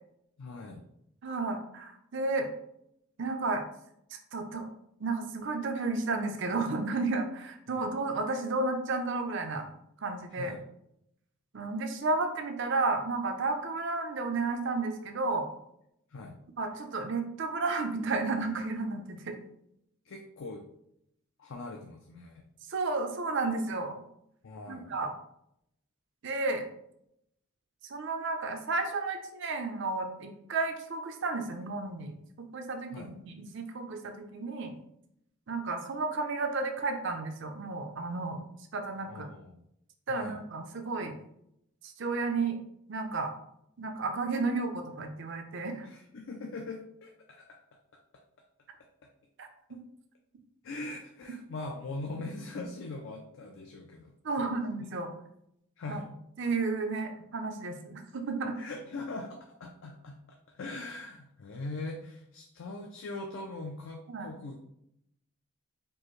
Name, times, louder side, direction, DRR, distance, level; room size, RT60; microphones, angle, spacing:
voice 1, 0.4-0.8 7.7-7.9 10.3-10.6 16.1-16.4 20.0-20.6 21.4-22.4 24.4-25.0 32.9-33.1 39.1-39.6 40.1-40.4 45.8-47.6 50.6-54.9 55.8-56.1 58.6-64.6, left 2 dB, 60° left, 2 dB, 0.4 m, -41 dB
voice 2, 1.2-2.5 3.2-3.6 4.3-4.7 5.0-9.7 10.0-10.5 11.5-15.5 16.6-19.4 22.7-24.0 24.7-25.1 26.2-26.6 27.9-32.1 32.4-34.7 35.5-38.4 38.7-39.3 40.1-41.1 42.0-42.6 42.9-43.3 43.8-45.9 49.4-49.8 54.2-55.1 55.9-56.0 56.4-58.6 64.1-64.3, right 3 dB, 55° right, 5 dB, 0.5 m, -32 dB
4.5 x 2.5 x 3.1 m, 0.77 s
head